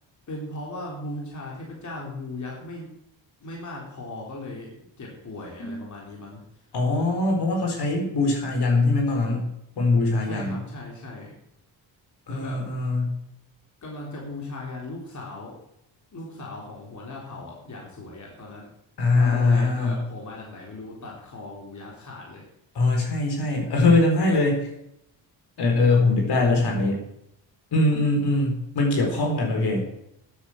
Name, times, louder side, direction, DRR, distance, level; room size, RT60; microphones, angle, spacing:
voice 1, 0.3-2.9 3.4-6.4 10.2-11.4 12.3-12.6 13.8-15.6 16.1-18.7 19.1-22.4, left 2 dB, 40° left, -2 dB, 3.8 m, -38 dB
voice 2, 6.7-9.5 9.8-10.6 12.3-13.1 19.0-20.0 22.7-24.7 25.6-27.0 27.7-29.8, left 2 dB, 60° left, 1 dB, 4.5 m, -22 dB
13.0 x 8.5 x 6.3 m, 0.78 s
cardioid pair, 90°, 45 cm